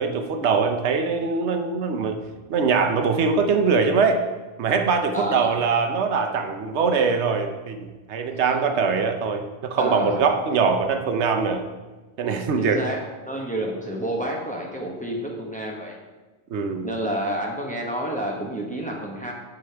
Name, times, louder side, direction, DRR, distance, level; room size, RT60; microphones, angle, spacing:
voice 1, 0.0-2.2 2.5-4.2 4.6-11.6 12.2-12.8 16.5-16.9, right 5 dB, 85° right, 6 dB, 1.0 m, -22 dB
voice 2, 5.1-5.5 9.8-10.2 12.6-16.0 16.8-19.3, right 1 dB, 10° left, -1 dB, 0.9 m, -29 dB
8.3 x 6.2 x 3.4 m, 1.3 s
omnidirectional pair, 1.1 m